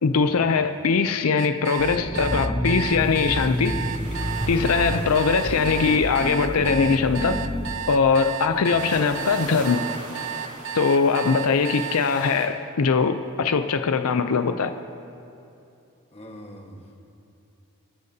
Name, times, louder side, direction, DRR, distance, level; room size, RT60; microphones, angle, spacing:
voice 1, 0.0-3.8 4.5-7.4 7.9-9.8 10.7-14.7, left 5 dB, 80° left, 9 dB, 0.5 m, -21 dB
sound 1, 1.4-12.0, right 9 dB, 55° right, 0.5 m, -33 dB
sound 2, 1.8-7.8, equal, 10° left, 1.4 m, -29 dB
sound 3, 3.0-12.5, right 1 dB, 30° right, 2.5 m, -41 dB
voice 2, 16.1-16.9, equal, 25° left, 1 dB, 1.4 m, -43 dB
25.5 x 13.0 x 2.8 m, 2.8 s
head